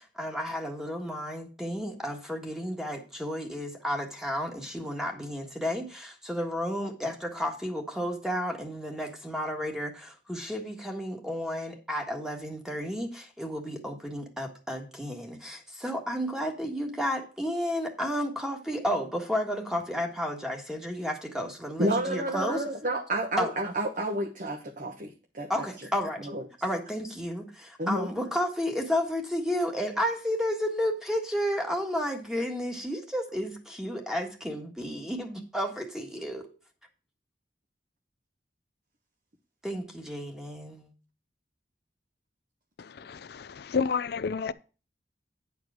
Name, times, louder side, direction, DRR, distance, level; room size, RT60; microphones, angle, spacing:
voice 1, 0.0-22.6 23.4-23.5 25.5-26.2 26.6-36.4 39.6-40.9, equal, 5° right, 1.5 m, -32 dB
voice 2, 21.8-25.5 26.2-26.4 27.8-28.1, right 1 dB, 50° right, 1.2 m, -30 dB
voice 3, 42.8-44.5, left 5 dB, 60° left, 0.5 m, -30 dB
9.7 x 4.8 x 6.2 m
head